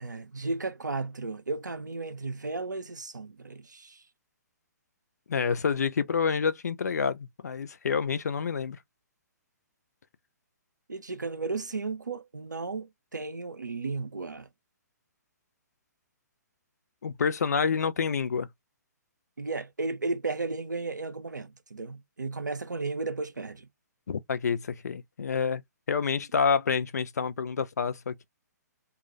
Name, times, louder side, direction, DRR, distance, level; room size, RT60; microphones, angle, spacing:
voice 1, 0.0-4.0 10.9-14.5 19.4-23.7, right 3 dB, 85° right, 0.4 m, -34 dB
voice 2, 5.3-8.8 17.0-18.5 24.1-25.6 25.9-28.2, left 6 dB, 65° left, 0.5 m, -28 dB
2.3 x 2.0 x 3.0 m
figure-of-eight pair, 125°, 10 cm